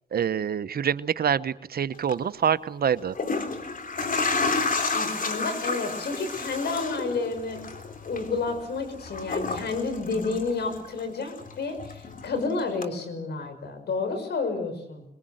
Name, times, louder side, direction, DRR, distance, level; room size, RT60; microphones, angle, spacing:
voice 1, 0.1-3.2, right 8 dB, 65° right, 14 dB, 1.0 m, -26 dB
sound 1, 1.9-2.1 3.0-11.0 11.3-12.4 12.8-12.9, left 3 dB, 55° left, 3.3 m, -31 dB
voice 2, 4.9-15.0, left 4 dB, 80° left, 7 dB, 5.8 m, -30 dB
26.5 x 21.5 x 8.0 m, 0.78 s
cardioid pair, 60°, 17 cm